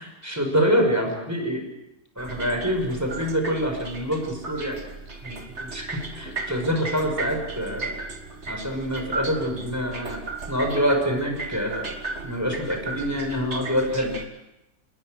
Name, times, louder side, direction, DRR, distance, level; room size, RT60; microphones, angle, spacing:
voice 1, 0.0-1.6 2.2-4.8 5.2-8.0 8.5-10.2 10.5-11.9 12.2-14.1, equal, 10° right, 3 dB, 5.7 m, -26 dB
sound 1, 2.2-14.3, right 3 dB, 45° right, 2.3 m, -36 dB
28.0 x 21.5 x 6.5 m, 0.90 s
omnidirectional pair, 1.7 m